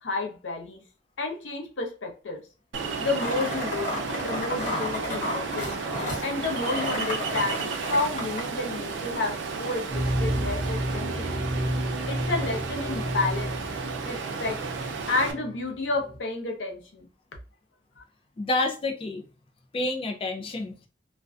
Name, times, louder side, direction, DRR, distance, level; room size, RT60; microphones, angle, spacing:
voice 1, 0.0-0.8 1.2-2.4 3.0-3.9 4.2-5.7 6.2-11.4 12.0-13.6 14.0-14.6 15.1-17.1 18.0-18.1, left 3 dB, 80° left, 0.6 m, -31 dB
Ocean, 2.7-15.3, right 4 dB, 75° right, 0.5 m, -33 dB
sound 1, 3.2-8.4, left 2 dB, 45° left, 1.0 m, -33 dB
sound 2, 9.9-15.7 15.9-16.2, equal, 30° right, 0.6 m, -31 dB
voice 2, 18.4-19.2 19.7-20.9, left 2 dB, 30° left, 0.4 m, -29 dB
2.4 x 2.1 x 2.4 m
head